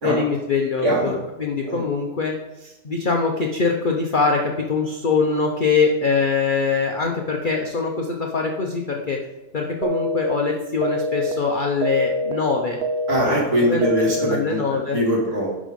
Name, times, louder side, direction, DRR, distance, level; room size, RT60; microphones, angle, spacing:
voice 1, 0.0-2.3 2.6-9.2 9.5-12.8 13.2-13.3 13.7-15.0, left 4 dB, 50° left, 1 dB, 0.6 m, -23 dB
voice 2, 0.8-1.2 1.6-1.8 13.1-14.6 14.9-15.5, equal, 45° right, -4 dB, 2.6 m, -21 dB
sound 1, 9.8-10.3 10.8-11.3 11.8-12.3 12.8-13.3 13.8-14.3, equal, 75° right, 0.6 m, -25 dB
10.5 x 3.7 x 5.1 m, 0.99 s
omnidirectional pair, 1.7 m